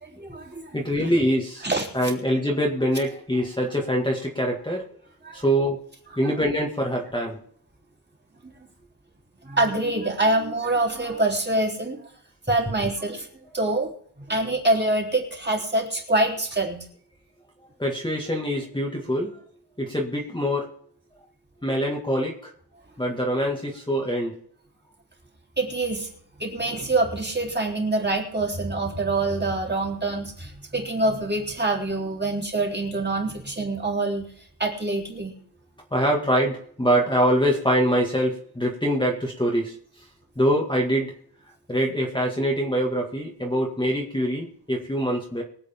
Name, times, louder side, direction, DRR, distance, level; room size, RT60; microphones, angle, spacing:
voice 1, 0.0-0.8 1.6-1.9 5.2-5.4 9.4-12.0 12.5-13.3 13.5-13.9 14.3-16.8 25.6-26.1 26.4-34.3 34.6-35.3, right 2 dB, 25° right, -2 dB, 3.7 m, -25 dB
voice 2, 0.7-1.7 1.9-4.9 5.3-5.8 6.2-7.4 17.8-19.4 19.8-20.7 21.6-22.5 23.0-24.4 35.9-40.1 40.4-41.1 41.7-45.4, equal, 10° left, -1 dB, 2.0 m, -24 dB
24.0 x 8.3 x 3.7 m, 0.63 s
wide cardioid pair, 130°, 40 cm